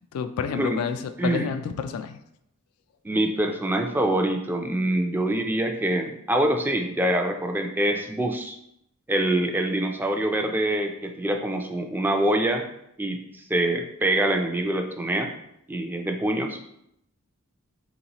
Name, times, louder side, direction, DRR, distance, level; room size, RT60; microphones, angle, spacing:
voice 1, 0.1-2.2, left 6 dB, 80° left, 10 dB, 0.3 m, -29 dB
voice 2, 1.2-1.6 3.0-8.6 9.1-12.6 13.0-15.3 15.7-16.6, right 1 dB, 10° right, 4 dB, 0.4 m, -25 dB
4.0 x 3.9 x 2.9 m, 0.78 s
head